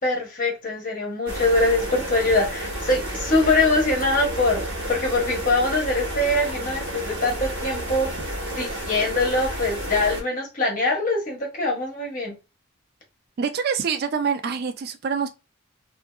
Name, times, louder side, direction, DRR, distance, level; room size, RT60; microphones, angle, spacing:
voice 1, 0.0-8.1 8.5-12.4, left 2 dB, 45° left, 1.0 m, -23 dB
sound 1, 1.3-10.2, right 1 dB, 75° right, 1.1 m, -31 dB
voice 2, 13.4-15.3, right 6 dB, 50° right, 0.3 m, -25 dB
2.7 x 2.4 x 2.2 m
head